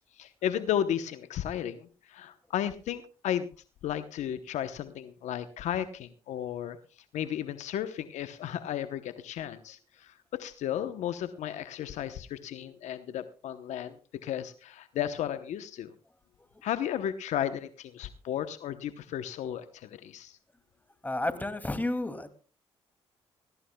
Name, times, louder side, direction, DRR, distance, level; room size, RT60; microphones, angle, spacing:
voice 1, 0.0-3.5 3.8-6.8 7.1-14.0 14.2-15.9 16.6-20.4, left 10 dB, 75° left, 11 dB, 0.9 m, -34 dB
voice 2, 21.0-22.3, left 2 dB, 15° left, 9 dB, 2.5 m, -31 dB
20.5 x 17.0 x 2.3 m, 0.35 s
supercardioid pair, 55°, 12 cm